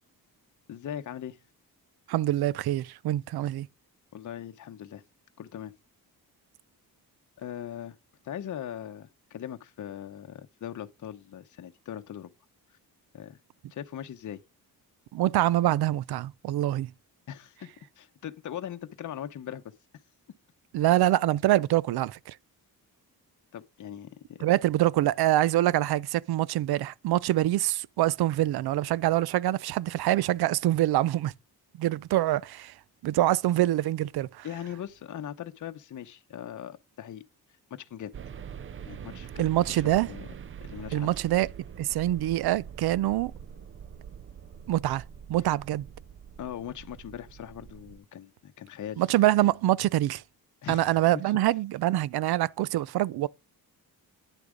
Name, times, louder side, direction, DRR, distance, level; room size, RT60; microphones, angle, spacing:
voice 1, 0.7-1.4 4.1-5.0 5.4-5.7 7.4-8.0 8.2-12.3 13.1-13.4 13.7-14.4 17.3-17.7 18.0-19.6 23.5-24.4 34.4-37.2 37.7-38.1 38.8-40.3 40.6-41.1 46.4-49.0 50.6-51.0, left 10 dB, 50° left, 0.9 m, -40 dB
voice 2, 2.1-3.7 15.1-16.9 20.7-22.3 24.4-31.3 31.8-32.7 33.0-34.5 39.4-40.1 40.9-41.5 41.8-43.3 44.7-45.0 45.3-45.9 49.0-50.2 50.7-53.3, right 14 dB, 80° right, 0.5 m, -25 dB
sound 1, 38.1-48.0, right 8 dB, 35° right, 0.5 m, -44 dB
10.0 x 6.8 x 5.0 m
cardioid pair, 115°, 38 cm